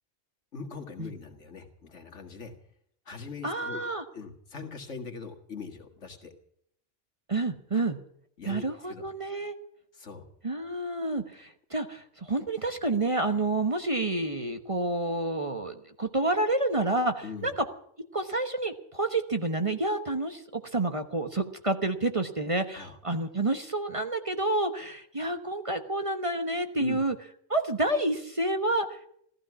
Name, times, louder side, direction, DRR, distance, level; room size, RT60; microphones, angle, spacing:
voice 1, 0.5-2.5 3.1-3.8 4.1-6.3 7.7-7.8 8.4-9.0 9.9-10.3 17.2-17.5 22.7-22.9 26.8-27.0, left 5 dB, 75° left, 5 dB, 2.3 m, -41 dB
voice 2, 3.4-4.0 7.3-8.0 8.4-9.5 10.4-17.5 18.1-27.1 27.5-29.0, right 2 dB, 30° right, 7 dB, 1.1 m, -29 dB
15.5 x 14.5 x 6.1 m, 0.68 s
omnidirectional pair, 1.2 m